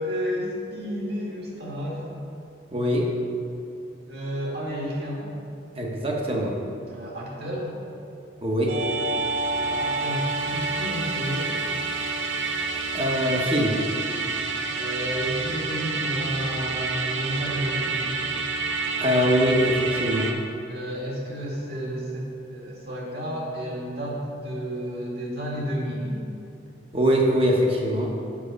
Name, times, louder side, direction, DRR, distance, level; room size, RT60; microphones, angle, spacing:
voice 1, 0.0-2.0 4.1-5.3 6.9-7.8 9.6-11.5 14.7-18.2 20.7-26.1, equal, 60° right, -4 dB, 2.0 m, -31 dB
voice 2, 2.7-3.1 5.8-6.5 8.4-8.8 12.9-13.8 19.0-20.4 26.9-28.1, equal, 30° right, -1 dB, 1.0 m, -22 dB
Musical instrument, 8.7-20.3, right 3 dB, 90° right, 0.7 m, -28 dB
7.3 x 6.1 x 5.3 m, 2.6 s
head